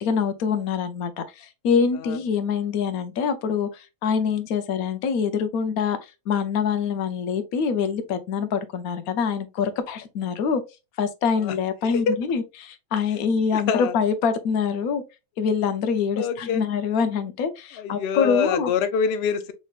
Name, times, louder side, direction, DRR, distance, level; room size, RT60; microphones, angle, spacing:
voice 1, 0.0-6.0 6.3-10.6 11.0-15.0 15.4-18.7, left 6 dB, 85° left, 1.1 m, -25 dB
voice 2, 13.5-13.9 16.2-16.6 17.8-19.5, left 6 dB, 60° left, 0.7 m, -25 dB
5.4 x 3.1 x 2.3 m
omnidirectional pair, 1.5 m